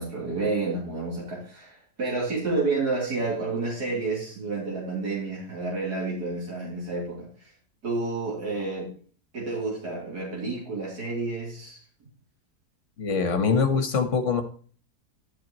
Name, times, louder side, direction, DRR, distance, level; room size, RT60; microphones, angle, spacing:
voice 1, 0.0-7.3 7.8-8.9 9.3-11.8, right 3 dB, 70° right, -4 dB, 3.9 m, -30 dB
voice 2, 13.0-14.4, left 5 dB, 50° left, 8 dB, 1.6 m, -23 dB
11.5 x 8.2 x 3.0 m, 0.42 s
omnidirectional pair, 1.7 m